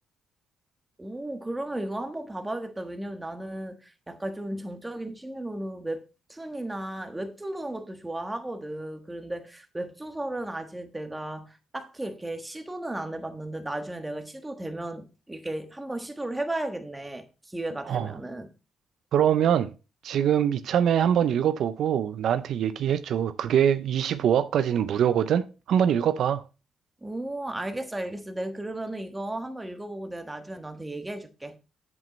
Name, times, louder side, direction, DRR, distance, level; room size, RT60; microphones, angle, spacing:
voice 1, 1.0-6.0 6.3-18.5 27.0-31.6, right 1 dB, 10° right, 1.3 m, -35 dB
voice 2, 19.1-19.7 20.0-26.4, right 9 dB, 70° right, 0.5 m, -23 dB
7.7 x 7.5 x 3.1 m
cardioid pair, 90°, 0 cm